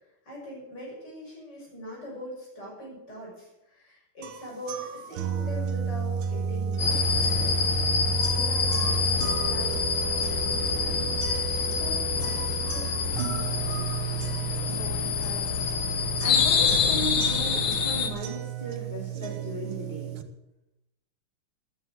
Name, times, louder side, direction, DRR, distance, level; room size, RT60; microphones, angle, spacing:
voice 1, 0.2-7.6 7.9-9.0 9.4-11.0 11.8-12.9, equal, 50° left, -4 dB, 6.7 m, -42 dB
sound 1, 4.2-20.2, right 7 dB, 90° right, 1.9 m, -32 dB
sound 2, 6.8-18.1, left 6 dB, 70° left, 2.2 m, -26 dB
voice 2, 14.8-15.5 15.9-20.1, right 1 dB, 20° left, -5 dB, 4.1 m, -37 dB
13.5 x 9.2 x 7.5 m, 0.92 s
omnidirectional pair, 2.3 m